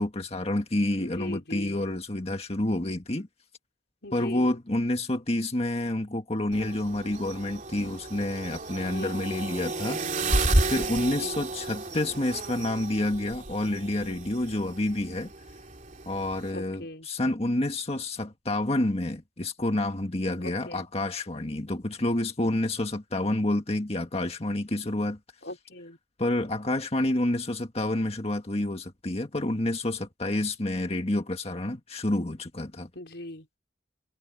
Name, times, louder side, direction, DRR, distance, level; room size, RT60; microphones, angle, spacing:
voice 1, 0.0-3.3 4.1-10.2 10.7-15.3 16.1-25.2 26.2-32.9, left 1 dB, 35° left, 1.7 m, -29 dB
voice 2, 1.0-1.8 4.0-4.5 8.8-9.2 11.1-11.4 16.5-17.1 20.4-20.9 25.4-26.0 32.9-33.5, left 1 dB, 75° left, 5.0 m, -40 dB
sound 1, 6.5-16.5, right 2 dB, 45° right, 3.1 m, -32 dB
head